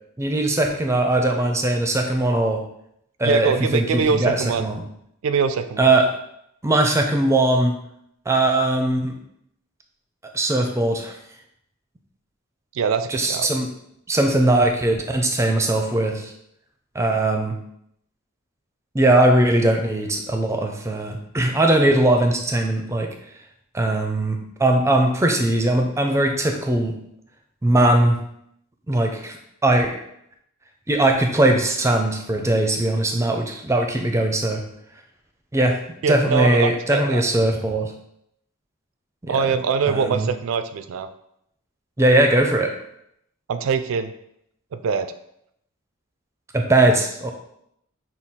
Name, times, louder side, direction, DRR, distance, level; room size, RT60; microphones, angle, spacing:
voice 1, 0.2-2.6 3.2-4.8 5.8-6.1 6.6-7.8 8.3-9.2 10.3-11.1 13.1-13.7 14.1-16.3 16.9-17.6 18.9-23.1 23.7-27.0 27.6-28.2 28.9-29.4 29.6-30.0 30.9-34.6 35.5-35.8 36.1-37.9 39.2-39.4 39.9-40.3 42.0-42.7 46.5-47.3, right 1 dB, 15° right, 3 dB, 0.4 m, -20 dB
voice 2, 3.2-4.7 5.2-5.9 12.7-13.5 36.0-37.2 39.3-41.1 43.5-44.1 44.7-45.1, right 5 dB, 75° right, 10 dB, 0.3 m, -23 dB
5.8 x 2.3 x 3.5 m, 0.75 s
head